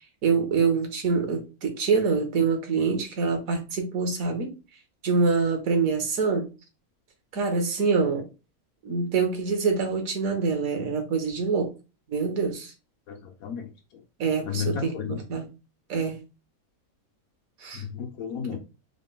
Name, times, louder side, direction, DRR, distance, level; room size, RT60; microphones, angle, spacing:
voice 1, 0.2-4.5 5.0-6.5 7.3-8.2 8.8-11.7 12.1-12.7 14.2-15.5 15.9-16.2 17.6-17.8 18.5-18.6, right 5 dB, 70° right, 1.3 m, -25 dB
voice 2, 13.1-13.7 14.5-15.2 17.7-18.6, left 7 dB, 75° left, 1.0 m, -32 dB
3.8 x 2.2 x 3.7 m
omnidirectional pair, 1.6 m